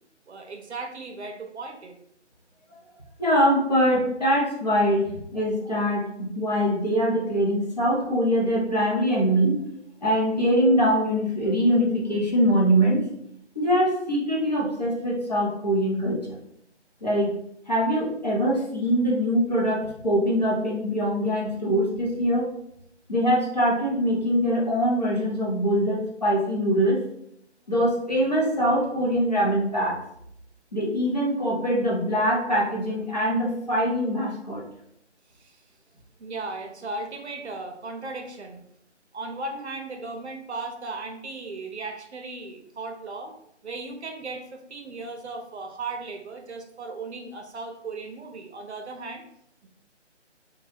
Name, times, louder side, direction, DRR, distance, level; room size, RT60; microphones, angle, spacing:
voice 1, 0.3-1.9 35.4-35.6 36.2-38.6 39.1-43.3 43.6-49.2 49.6-49.7, right 3 dB, 65° right, 4 dB, 0.6 m, -36 dB
voice 2, 3.2-9.6 10.0-13.1 13.5-16.2 17.0-17.3 17.7-22.5 23.1-27.0 27.7-30.0 30.7-34.6, equal, 35° left, -5 dB, 0.6 m, -23 dB
2.6 x 2.2 x 3.2 m, 0.75 s
figure-of-eight pair, 170°, 36 cm